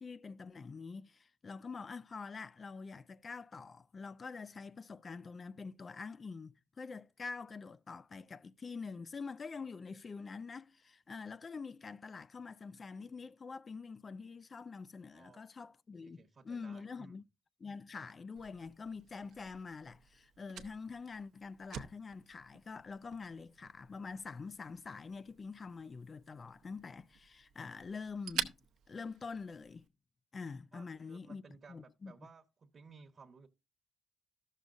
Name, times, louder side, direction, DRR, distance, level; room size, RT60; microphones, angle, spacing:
voice 1, 0.0-17.2 17.6-28.6 28.9-29.9 30.3-31.4 31.7-32.1, left 4 dB, 35° left, 0.4 m, -46 dB
voice 2, 16.0-17.2 30.7-33.5, right 5 dB, 45° right, 1.0 m, -58 dB
Fire, 18.4-29.9, right 9 dB, 75° right, 0.8 m, -48 dB
13.5 x 6.4 x 2.5 m
cardioid pair, 90°, 0 cm